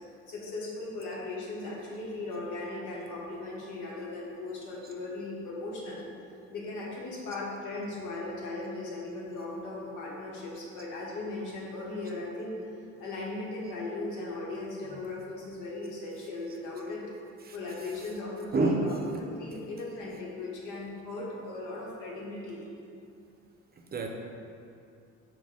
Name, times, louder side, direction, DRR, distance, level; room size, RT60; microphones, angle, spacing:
voice 1, 0.3-6.0 6.5-12.5 13.0-17.0 17.5-22.7, left 2 dB, 85° left, -4 dB, 1.0 m, -38 dB
voice 2, 18.5-19.0 23.9-24.1, right 3 dB, 30° right, 2 dB, 0.5 m, -27 dB
6.2 x 2.2 x 3.7 m, 2.6 s
cardioid pair, 90°, 30 cm